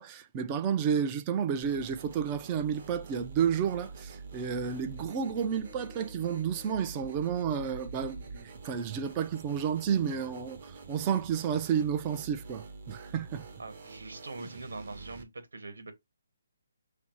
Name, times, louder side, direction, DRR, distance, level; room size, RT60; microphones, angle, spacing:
voice 1, 0.0-13.5, right 7 dB, 20° right, 0.4 m, -31 dB
sound 1, 1.6-15.2, right 4 dB, 40° right, 1.0 m, -46 dB
voice 2, 13.6-15.9, right 3 dB, 85° right, 1.4 m, -43 dB
5.8 x 2.0 x 4.4 m
hypercardioid pair, 170°, 0 cm